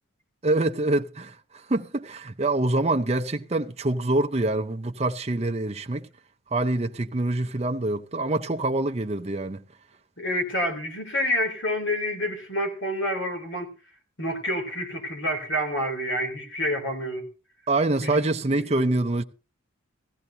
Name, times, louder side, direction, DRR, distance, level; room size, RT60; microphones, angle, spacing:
voice 1, 0.4-6.1 6.5-9.6 17.7-19.2, right 2 dB, 30° right, 0.6 m, -25 dB
voice 2, 10.2-13.7 14.2-17.3 18.0-18.2 18.5-18.9, equal, 60° left, 3.2 m, -28 dB
16.5 x 15.5 x 2.8 m
head